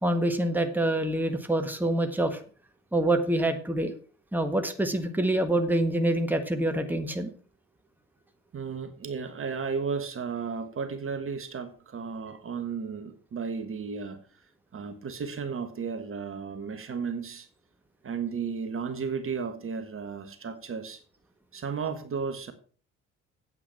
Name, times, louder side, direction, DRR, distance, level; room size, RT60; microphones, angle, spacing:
voice 1, 0.0-2.4 2.9-3.9 4.3-7.3, right 1 dB, 5° right, 7 dB, 1.5 m, -26 dB
voice 2, 8.5-17.5 18.0-21.0 21.5-22.5, right 5 dB, 35° right, 10 dB, 1.5 m, -34 dB
8.8 x 8.6 x 5.9 m, 0.41 s
figure-of-eight pair, 50°, 38 cm